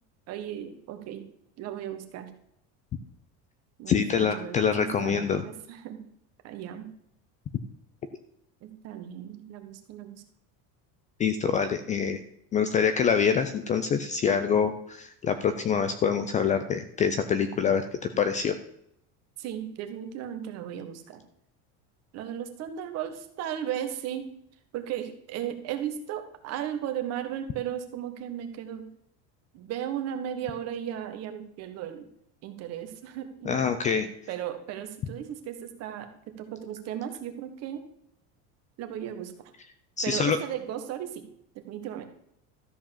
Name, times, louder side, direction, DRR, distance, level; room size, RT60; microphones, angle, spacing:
voice 1, 0.3-1.3 1.6-2.3 3.8-6.1 6.4-6.9 8.6-10.2 19.4-21.2 22.1-24.3 24.7-28.9 29.5-32.1 32.4-33.7 33.9-37.8 38.8-39.5 40.0-41.3 41.5-42.1, right 10 dB, 45° right, 7 dB, 1.5 m, -36 dB
voice 2, 3.9-5.4 11.2-12.2 12.5-18.6 33.5-34.1 40.0-40.4, left 6 dB, 20° left, 10 dB, 0.4 m, -25 dB
13.0 x 4.7 x 7.3 m, 0.74 s
cardioid pair, 170°, 37 cm